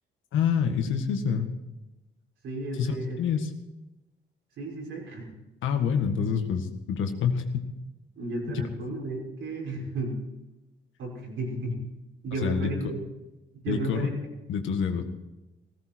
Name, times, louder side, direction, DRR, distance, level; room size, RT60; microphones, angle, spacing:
voice 1, 0.3-1.5 2.8-3.5 5.6-7.7 12.4-12.7 13.7-14.1 14.5-15.0, left 7 dB, 80° left, 6 dB, 1.8 m, -27 dB
voice 2, 2.4-3.2 4.6-5.3 8.2-10.2 11.0-11.8 12.2-13.0 13.6-14.1, right 2 dB, 75° right, -1 dB, 6.1 m, -33 dB
17.0 x 15.5 x 4.6 m, 1.0 s
cardioid pair, 90°, 20 cm